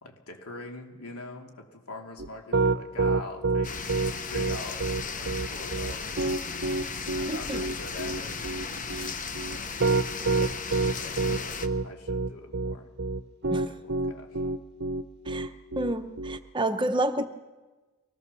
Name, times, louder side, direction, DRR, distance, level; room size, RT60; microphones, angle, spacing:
voice 1, 0.0-6.2 7.0-8.4 8.7-9.0 9.3-9.8 11.0-12.9 13.6-14.4, left 2 dB, 85° left, 2 dB, 2.9 m, -44 dB
Piano, 2.2-16.4, right 3 dB, 50° right, 0.7 m, -27 dB
sound 1, 3.6-11.7, left 5 dB, 35° left, 1.0 m, -36 dB
voice 2, 7.3-7.6 8.9-9.1 10.4-10.5 13.5-13.7 15.3-15.5 15.7-17.2, right 1 dB, 20° right, 8 dB, 0.8 m, -29 dB
23.5 x 18.5 x 6.9 m, 1.2 s
head